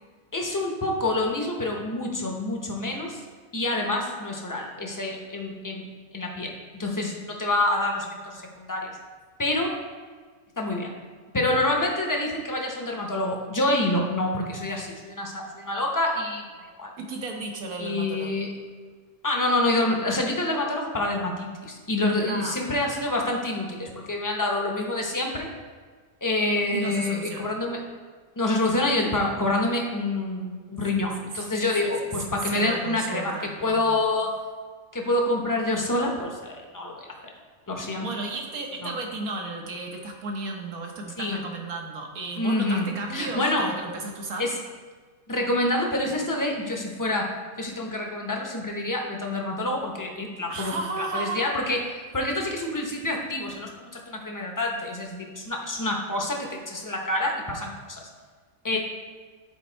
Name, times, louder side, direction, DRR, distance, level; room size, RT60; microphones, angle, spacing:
voice 1, 0.3-3.2 3.5-5.8 6.1-9.0 9.4-9.7 10.6-10.9 11.3-16.9 17.8-18.5 19.2-25.5 26.2-27.8 28.4-34.3 34.9-37.1 37.7-38.1 38.8-38.9 41.2-41.5 42.4-43.7 44.4-44.6 45.3-58.1 58.6-58.8, left 2 dB, 20° left, 0 dB, 0.6 m, -27 dB
voice 2, 17.0-18.4 22.3-22.6 26.7-27.5 30.9-31.0 31.8-31.9 32.5-34.0 38.0-44.5 50.5-51.4 58.7-58.8, right 2 dB, 80° right, 1 dB, 1.5 m, -34 dB
9.8 x 4.2 x 4.4 m, 1.5 s
omnidirectional pair, 1.5 m